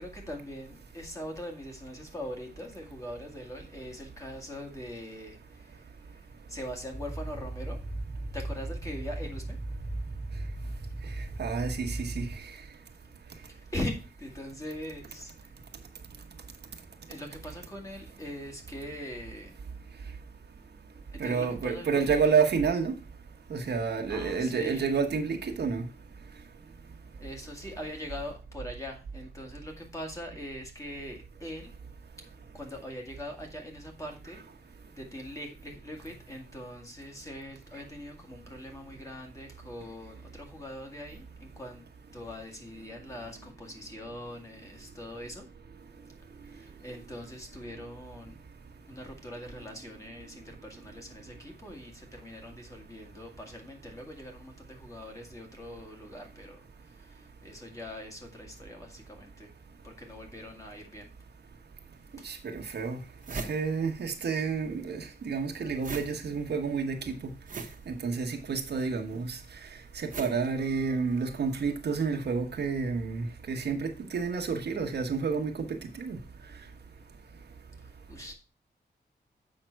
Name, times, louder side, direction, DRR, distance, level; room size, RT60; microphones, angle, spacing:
voice 1, 0.0-7.8 8.3-9.6 11.9-12.0 13.5-15.5 17.1-19.5 21.1-22.2 24.1-25.0 27.2-31.7 32.5-34.4 35.0-41.8 42.1-45.5 46.5-48.4 48.9-59.5 59.8-61.1 62.2-62.3 77.8-78.3, left 1 dB, 15° left, 1.9 m, -42 dB
sound 1, 6.9-12.4, right 2 dB, 15° right, 0.8 m, -37 dB
voice 2, 11.4-12.3 21.2-22.9 23.5-25.9 62.2-63.0 63.4-67.2 67.9-69.4 69.9-75.7 76.0-76.2, right 5 dB, 70° right, 1.2 m, -29 dB
sound 2, 62.0-62.1 62.6-62.7 62.9-64.5 64.7-71.3, right 4 dB, 50° right, 1.1 m, -42 dB
7.6 x 5.8 x 4.6 m
wide cardioid pair, 155°, 18 cm